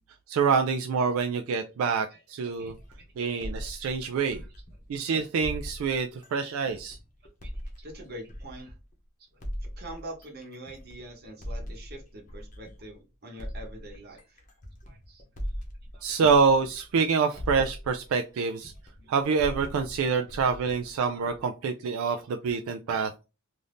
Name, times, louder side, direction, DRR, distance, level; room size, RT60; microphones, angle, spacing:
voice 1, 0.3-2.7 3.2-4.4 4.9-7.0 16.0-18.7 19.1-23.1, right 5 dB, 80° right, 6 dB, 0.3 m, -26 dB
voice 2, 2.1-2.7 7.4-7.5 7.8-8.7 9.3-9.4 9.8-14.4 14.9-15.2 15.9-16.1 19.0-19.1 20.1-20.2 22.1-22.2, right 1 dB, 50° right, 2 dB, 0.9 m, -44 dB
sound 1, 2.5-5.0 5.4-8.9 9.4-12.9 13.4-17.1 17.4-21.5, equal, 40° left, 0.7 m, -40 dB
2.6 x 2.5 x 3.3 m, 0.30 s
head